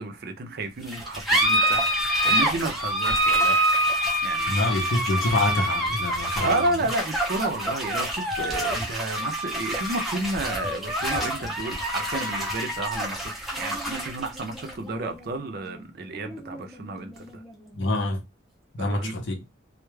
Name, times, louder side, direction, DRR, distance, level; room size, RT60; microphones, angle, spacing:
voice 1, 0.0-3.6 4.2-4.6 6.4-13.3 13.6-17.4 18.8-19.1, right 2 dB, 55° right, 0.5 m, -31 dB
sound 1, 0.8-17.8, equal, ahead, 0.5 m, -27 dB
voice 2, 4.5-6.8 17.7-18.3 18.7-19.4, left 2 dB, 70° left, 0.6 m, -26 dB
2.2 x 2.0 x 3.1 m
head